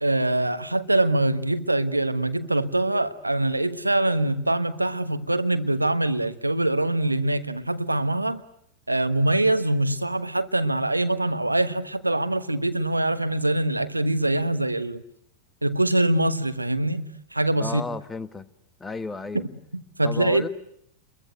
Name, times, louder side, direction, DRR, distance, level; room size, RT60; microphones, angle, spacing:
voice 1, 0.0-8.4 8.9-15.0 15.6-17.8 19.3-20.5, right 1 dB, 85° right, 1.2 m, -24 dB
voice 2, 17.6-18.5 18.8-19.5 20.0-20.5, left 3 dB, 10° left, 1.3 m, -33 dB
30.0 x 22.5 x 7.9 m
figure-of-eight pair, 90°, 0 cm